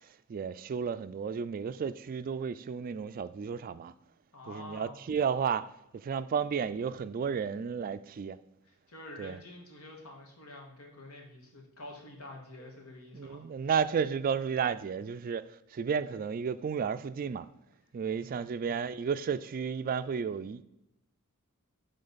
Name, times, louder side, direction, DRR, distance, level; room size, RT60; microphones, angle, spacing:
voice 1, 0.3-3.9 4.5-5.7 5.9-8.4 9.2-9.4 13.1-15.4 15.7-17.5 17.9-20.6, right 6 dB, 40° right, 0.3 m, -32 dB
voice 2, 4.3-5.0 8.6-13.4 18.1-18.6, left 2 dB, 85° left, 1.8 m, -48 dB
10.5 x 3.8 x 4.0 m
head